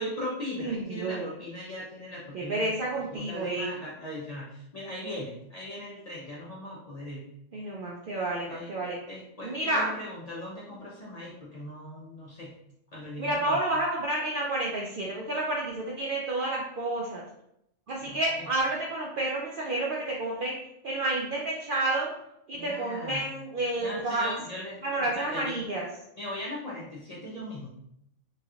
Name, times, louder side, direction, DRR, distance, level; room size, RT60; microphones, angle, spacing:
voice 1, 0.0-7.2 8.5-8.7 9.1-12.5 12.9-13.6 18.0-18.5 22.5-23.3 23.8-25.6 26.1-27.7, left 1 dB, 45° left, -6 dB, 0.5 m, -39 dB
voice 2, 0.6-1.3 2.3-3.7 7.5-9.0 9.4-9.9 13.2-17.2 17.9-20.6 20.8-22.1 22.5-24.3 24.8-25.9, right 2 dB, 65° right, -3 dB, 0.5 m, -30 dB
3.1 x 2.8 x 2.4 m, 0.78 s
omnidirectional pair, 1.3 m